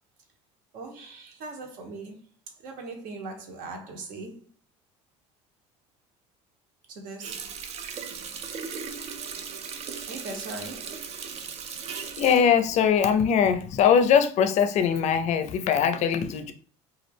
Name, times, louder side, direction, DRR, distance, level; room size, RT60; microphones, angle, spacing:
voice 1, 0.7-2.2 2.6-4.5 6.9-7.5 10.0-11.1, right 3 dB, 65° right, 0.8 m, -40 dB
Water tap faucet, 7.2-13.6 14.0-14.1, right 6 dB, 45° right, 0.4 m, -38 dB
voice 2, 11.9-16.5, left 7 dB, 50° left, 0.4 m, -22 dB
2.3 x 2.1 x 3.3 m
supercardioid pair, 80°, 15 cm